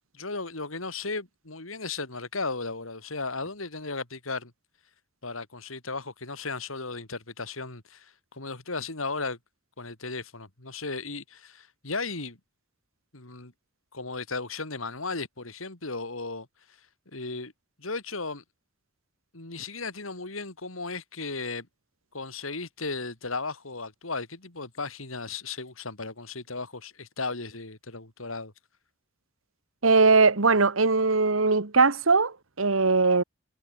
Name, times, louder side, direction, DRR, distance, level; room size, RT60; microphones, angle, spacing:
voice 1, 0.1-4.5 5.2-9.4 9.8-12.4 13.1-13.5 13.9-16.5 17.1-17.5 17.8-18.4 19.3-21.7 22.1-28.5, left 3 dB, 90° left, 3.8 m, -35 dB
voice 2, 29.8-33.2, right 4 dB, 85° right, 1.6 m, -20 dB
head